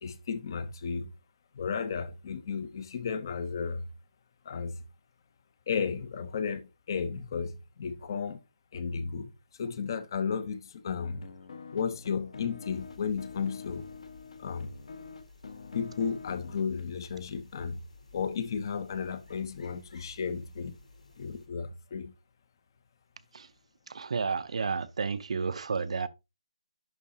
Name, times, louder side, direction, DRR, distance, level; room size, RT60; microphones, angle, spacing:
voice 1, 0.0-1.1 1.5-3.9 4.4-4.8 5.7-8.4 8.7-11.3 11.7-13.8 14.4-14.7 15.7-17.8 18.1-20.8 21.2-22.1, left 6 dB, 35° left, 0.7 m, -34 dB
sound 1, 11.0-17.4, left 5 dB, 55° left, 1.2 m, -46 dB
sound 2, 12.7-21.5, left 3 dB, 80° left, 4.5 m, -56 dB
voice 2, 23.9-26.1, right 5 dB, 60° right, 0.6 m, -31 dB
11.0 x 3.8 x 2.8 m
hypercardioid pair, 165°, 4 cm